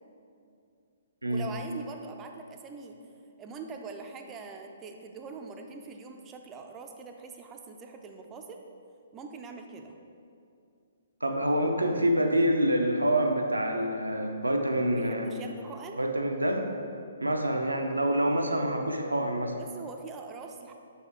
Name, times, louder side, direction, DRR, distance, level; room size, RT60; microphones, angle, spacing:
voice 1, 1.3-2.9 3.4-8.6 9.1-10.0 14.9-16.1 18.9-19.0 19.5-20.7, right 4 dB, 20° right, 4 dB, 0.5 m, -43 dB
voice 2, 11.2-15.3 16.0-16.7 17.2-19.5, right 1 dB, 85° right, 3 dB, 0.6 m, -26 dB
6.3 x 4.2 x 3.6 m, 2.5 s
figure-of-eight pair, 125°, 0 cm